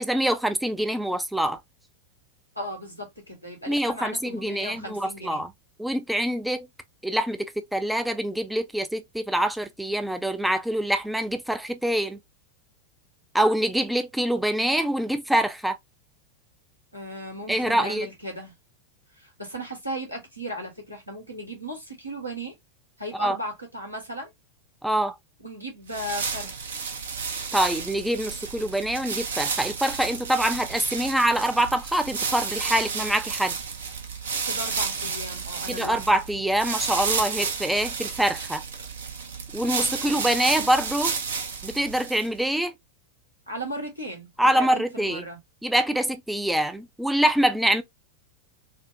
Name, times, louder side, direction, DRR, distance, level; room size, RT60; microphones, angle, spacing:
voice 1, 0.0-1.6 3.7-5.5 5.8-6.7 7.0-12.2 13.3-15.8 17.5-18.1 23.2-23.4 24.8-25.2 27.5-33.6 35.7-38.6 39.5-41.2 41.6-42.8 44.4-45.2 45.6-47.8, right 1 dB, 5° right, 0.4 m, -25 dB
voice 2, 2.5-5.4 16.9-18.5 19.2-22.5 23.0-24.3 25.4-26.6 34.4-36.1 43.5-44.3 44.5-45.4, equal, 90° right, 1.4 m, -36 dB
sound 1, 25.9-42.4, right 5 dB, 65° right, 0.7 m, -31 dB
4.2 x 2.1 x 2.5 m
figure-of-eight pair, 90°, 0 cm